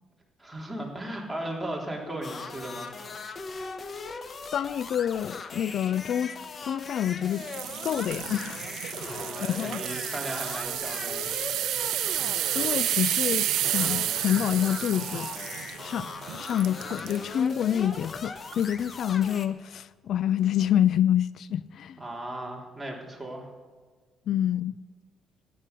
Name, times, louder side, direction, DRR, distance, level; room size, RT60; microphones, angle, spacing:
voice 1, 0.4-3.0 3.6-3.7 9.0-11.3 22.0-23.5, right 1 dB, 5° right, 3.3 m, -36 dB
sound 1, 2.2-19.5, left 4 dB, 45° left, 1.1 m, -39 dB
voice 2, 4.5-7.5 7.8-8.6 9.4-9.8 12.5-15.3 15.8-22.0 24.3-24.7, left 10 dB, 70° left, 0.3 m, -27 dB
sound 2, 7.3-17.2 17.8-18.0 18.5-18.6, right 13 dB, 85° right, 0.5 m, -31 dB
14.0 x 10.0 x 6.7 m
cardioid pair, 90°, 0 cm